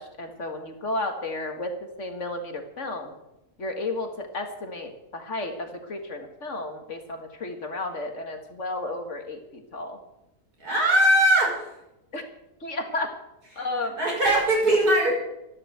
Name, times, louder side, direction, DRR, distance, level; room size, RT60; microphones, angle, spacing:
voice 1, 0.0-3.1 3.6-10.0 12.1-12.2 12.6-13.1 13.6-14.0, left 2 dB, 50° left, 5 dB, 2.1 m, -33 dB
voice 2, 10.6-11.8 14.0-15.1, right 1 dB, 75° right, -1 dB, 6.4 m, -20 dB
13.0 x 11.0 x 8.0 m, 0.88 s
omnidirectional pair, 1.6 m